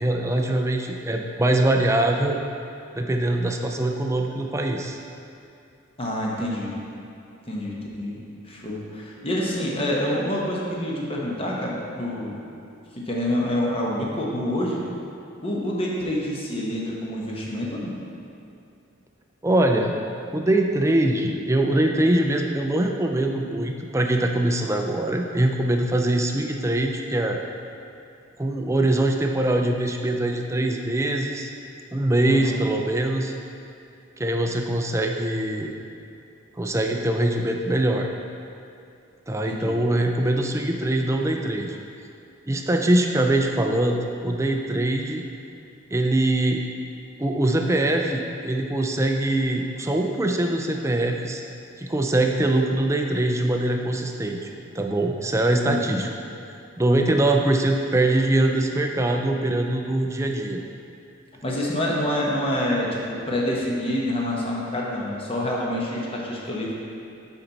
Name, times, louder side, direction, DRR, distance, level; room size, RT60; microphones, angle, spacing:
voice 1, 0.0-2.4 2.9-5.0 19.4-19.9 20.3-27.4 28.4-31.5 31.9-33.3 34.2-35.7 36.6-38.1 39.3-41.8 42.5-44.0 44.2-45.2 45.9-46.6 47.2-51.4 51.8-56.1 56.8-60.6, right 1 dB, 15° right, 2 dB, 0.4 m, -23 dB
voice 2, 6.0-6.8 7.4-12.4 12.9-14.8 15.4-17.9 32.3-32.5 39.5-39.8 55.7-56.0 61.4-66.7, left 1 dB, 25° left, -3 dB, 1.0 m, -27 dB
9.1 x 4.5 x 4.0 m, 2.6 s
head